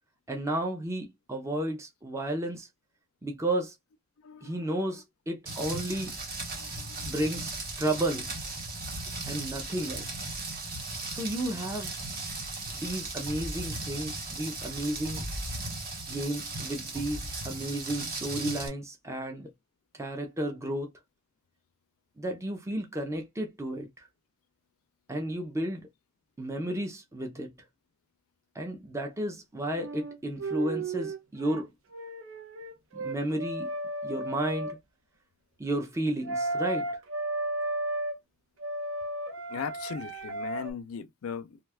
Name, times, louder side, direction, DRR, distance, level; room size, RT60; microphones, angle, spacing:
voice 1, 0.3-2.7 3.2-3.7 4.4-6.1 7.0-8.3 9.3-10.2 11.1-11.9 12.7-15.3 16.1-19.5 19.9-20.9 22.2-24.1 25.1-25.9 26.4-27.5 28.5-31.7 32.9-33.7 34.0-34.8 35.6-36.9, right 1 dB, 15° right, 0.5 m, -33 dB
voice 2, 4.2-5.0 5.5-5.6 5.9-6.1 6.5-7.2 9.1-9.2 39.5-41.6, left 7 dB, 75° left, 0.4 m, -40 dB
Rain, 5.5-18.7, right 2 dB, 45° right, 1.0 m, -37 dB
sound 1, 29.7-31.6 31.9-34.8 36.2-38.2 38.6-40.7, right 2 dB, 65° right, 0.6 m, -34 dB
2.7 x 2.3 x 3.3 m
head